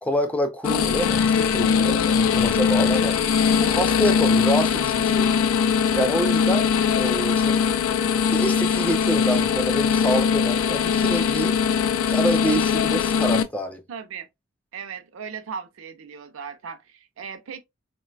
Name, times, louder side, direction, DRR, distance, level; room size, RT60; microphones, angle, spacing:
voice 1, 0.0-5.3 5.9-7.6 8.3-11.6 12.1-13.8, equal, 5° left, 0.3 m, -27 dB
sound 1, 0.6-13.4, left 6 dB, 85° left, 0.3 m, -21 dB
voice 2, 13.9-14.3 14.7-17.6, right 6 dB, 70° right, 0.5 m, -37 dB
3.8 x 2.2 x 2.3 m
head